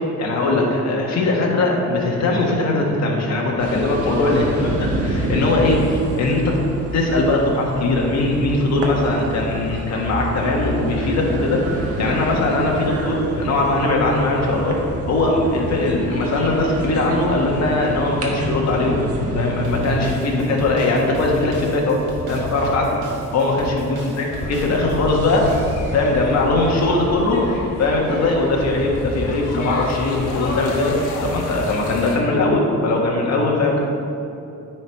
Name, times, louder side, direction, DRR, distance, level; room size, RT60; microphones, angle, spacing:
voice 1, 0.2-6.6 6.9-14.8 15.1-19.0 19.3-22.0 22.3-23.0 23.3-25.5 25.9-27.4 27.8-30.9 31.2-33.8, left 2 dB, 60° left, -1 dB, 1.5 m, -20 dB
sound 1, 3.6-20.1, right 1 dB, 50° right, 1.4 m, -27 dB
sound 2, 19.6-26.1, equal, 85° right, 1.6 m, -34 dB
sound 3, 24.3-32.2, left 1 dB, 80° left, 1.2 m, -29 dB
9.5 x 4.7 x 4.6 m, 2.8 s
cardioid pair, 90°, 30 cm